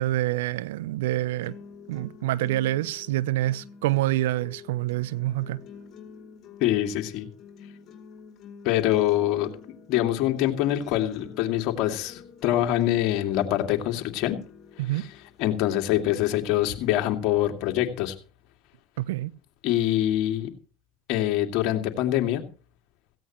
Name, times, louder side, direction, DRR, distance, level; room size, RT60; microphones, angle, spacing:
voice 1, 0.0-1.6 1.9-5.6 14.8-15.0 19.0-19.3, right 15 dB, 75° right, 0.7 m, -27 dB
sound 1, 1.1-17.1, left 6 dB, 40° left, 4.7 m, -48 dB
voice 2, 6.6-7.3 8.6-9.5 9.9-14.4 14.9-15.1 15.4-18.1 19.6-20.5 21.1-22.4, left 13 dB, 60° left, 2.4 m, -24 dB
17.0 x 16.0 x 3.1 m
hypercardioid pair, 85°, 0 cm